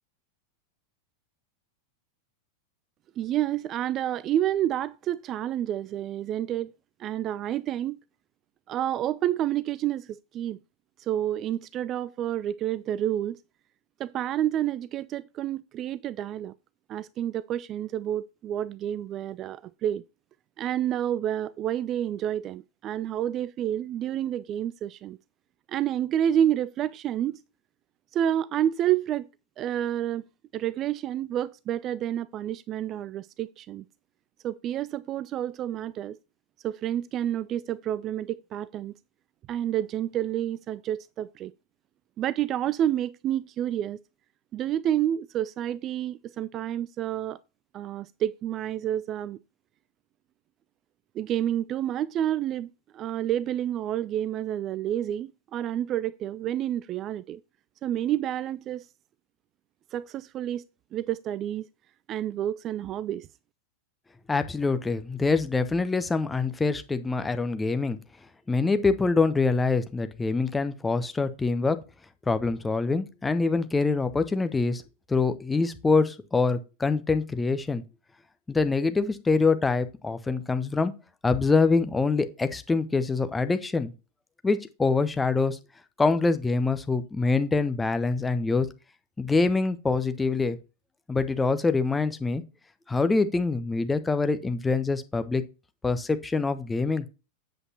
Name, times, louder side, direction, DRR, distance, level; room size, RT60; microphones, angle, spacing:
voice 1, 3.2-6.7 7.0-8.0 8.7-10.6 11.0-13.4 14.0-16.5 16.9-20.0 20.6-25.2 25.7-27.4 28.1-29.3 29.6-30.2 30.5-33.8 34.4-36.2 36.6-38.9 39.5-41.5 42.2-44.0 44.5-47.4 47.7-49.4 51.1-57.4 57.8-58.9 59.9-60.6 60.9-61.7 62.1-63.3, right 11 dB, 30° right, 0.3 m, -29 dB
voice 2, 64.3-68.0 68.5-71.8 72.3-74.8 75.1-77.8 78.5-80.9 81.2-83.9 84.4-85.6 86.0-88.7 89.2-90.6 91.1-92.4 92.9-95.4 95.8-97.0, left 4 dB, 10° left, 0.8 m, -25 dB
8.0 x 7.9 x 2.9 m
figure-of-eight pair, 90°, 0 cm